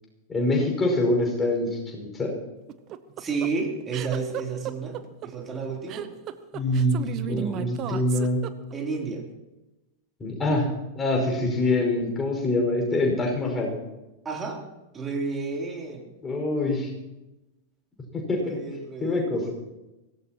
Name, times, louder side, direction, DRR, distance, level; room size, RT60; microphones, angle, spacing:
voice 1, 0.3-2.3 6.5-8.4 10.2-10.7 11.0-13.7 16.2-16.9 18.1-18.6 19.0-19.4, left 2 dB, 15° left, 0 dB, 5.6 m, -25 dB
sound 1, 2.7-9.0, right 11 dB, 35° right, 0.9 m, -34 dB
voice 2, 3.2-5.0 5.2-6.1 8.7-9.2 14.2-14.6 14.9-16.1 18.4-19.5, right 4 dB, 20° right, 0 dB, 3.4 m, -31 dB
24.0 x 17.5 x 3.1 m, 1.0 s
figure-of-eight pair, 90°, 0 cm